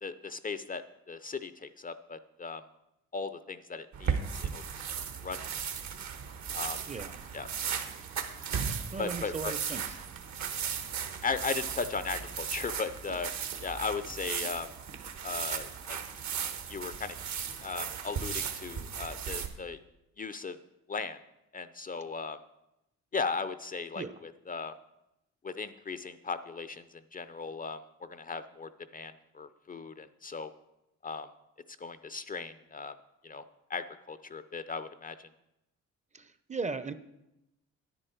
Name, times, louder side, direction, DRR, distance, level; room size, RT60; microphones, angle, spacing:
voice 1, 0.0-2.6 3.1-4.2 4.5-4.6 5.2-5.5 6.5-6.8 7.3-7.5 9.0-9.5 11.2-13.3 13.6-14.7 15.2-16.0 16.7-17.2 17.6-19.8 20.2-20.6 20.9-21.2 21.5-22.4 23.1-24.7 25.4-30.5 31.0-31.3 31.8-32.9 33.2-33.4 33.7-35.3, left 4 dB, 30° left, 12 dB, 0.5 m, -37 dB
sound 1, 3.9-19.5, right 7 dB, 65° right, 1.2 m, -36 dB
voice 2, 8.9-10.0 23.9-24.1 36.1-36.9, right 4 dB, 25° right, 12 dB, 0.6 m, -37 dB
9.9 x 9.8 x 4.4 m, 0.89 s
cardioid pair, 90°, 30 cm